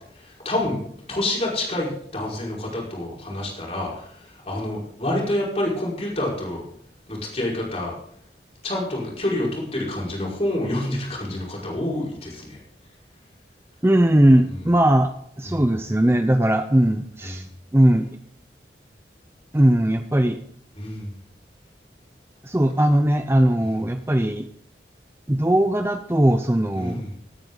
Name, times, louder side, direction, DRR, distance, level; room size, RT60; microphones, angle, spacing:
voice 1, 0.5-0.8 1.1-3.9 4.5-6.6 7.1-7.9 8.6-12.6 15.5-15.6 17.2-17.4 20.8-21.1 23.6-23.8 26.8-27.1, left 1 dB, 35° left, -4 dB, 5.3 m, -27 dB
voice 2, 13.8-15.1 15.4-17.5 17.7-18.1 19.5-20.4 22.4-24.5 25.3-27.0, right 1 dB, 15° right, 8 dB, 0.6 m, -19 dB
19.0 x 9.7 x 4.0 m, 0.65 s
head